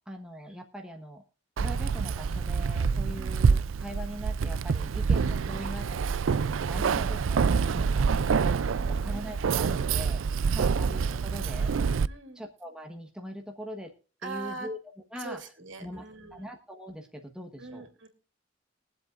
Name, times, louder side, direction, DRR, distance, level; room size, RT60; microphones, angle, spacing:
voice 1, 0.1-1.2 1.6-10.2 10.5-11.8 12.4-13.9 14.2-14.8 15.1-15.4 15.8-16.1 16.3-17.9, equal, 5° right, 2 dB, 1.2 m, -42 dB
Keys jangling, 1.6-12.1, right 5 dB, 85° right, 0.4 m, -26 dB
voice 2, 8.7-9.1 12.1-12.4 14.2-14.7 15.1-16.5 17.6-18.1, right 3 dB, 70° right, 5 dB, 2.9 m, -43 dB
22.5 x 7.8 x 2.5 m, 0.38 s
head